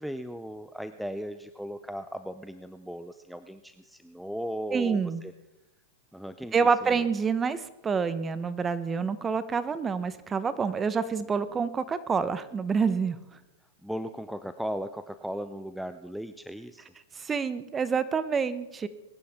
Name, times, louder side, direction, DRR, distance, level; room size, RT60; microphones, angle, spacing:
voice 1, 0.0-5.3 6.1-7.1 13.8-16.8, equal, ahead, 11 dB, 0.6 m, -37 dB
voice 2, 4.7-5.2 6.5-13.2 17.2-18.9, right 5 dB, 20° right, 14 dB, 1.0 m, -27 dB
21.5 x 11.5 x 3.6 m, 1.0 s
hypercardioid pair, 105°, 0 cm